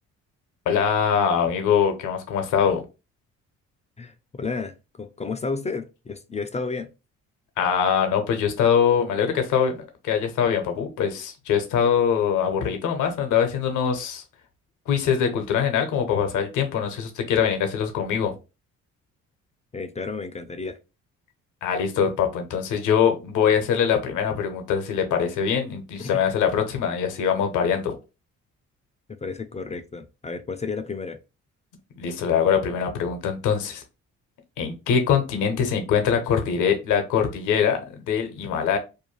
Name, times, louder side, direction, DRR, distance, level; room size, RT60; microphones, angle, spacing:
voice 1, 0.7-2.8 7.6-14.2 14.9-18.3 21.6-27.9 32.0-33.8 34.6-38.8, left 7 dB, 75° left, 0.7 m, -23 dB
voice 2, 4.0-6.9 19.7-20.8 26.0-26.2 29.2-31.2, left 4 dB, 20° left, 0.4 m, -32 dB
2.6 x 2.2 x 3.1 m
supercardioid pair, 65°, 31 cm